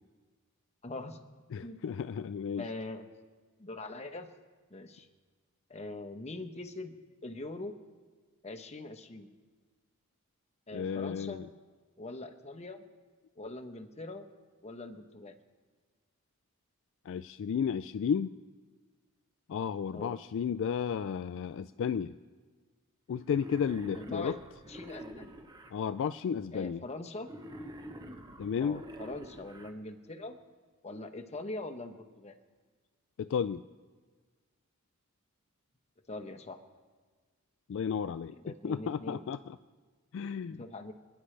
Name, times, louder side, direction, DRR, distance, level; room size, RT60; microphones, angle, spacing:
voice 1, 0.8-1.3 1.6-1.8 2.6-3.0 3.6-4.3 4.7-5.1 5.7-6.9 7.2-7.7 8.4-9.3 10.7-11.4 12.0-12.8 13.4-14.3 14.6-15.3 19.9-20.2 24.0-24.4 24.7-25.3 26.5-27.3 28.6-30.4 30.8-32.3 36.1-36.6 38.4-39.3 40.6-40.9, left 2 dB, 30° left, 7 dB, 0.9 m, -42 dB
voice 2, 1.5-2.7 10.7-11.5 17.1-18.3 19.5-22.2 23.1-24.4 25.7-26.8 28.4-28.8 33.2-33.6 37.7-39.6 40.1-40.7, left 7 dB, 60° left, 13 dB, 0.3 m, -33 dB
Wild animals, 23.2-25.7 27.2-29.7, equal, 20° right, 0.9 m, -46 dB
27.0 x 10.0 x 3.3 m, 1.4 s
head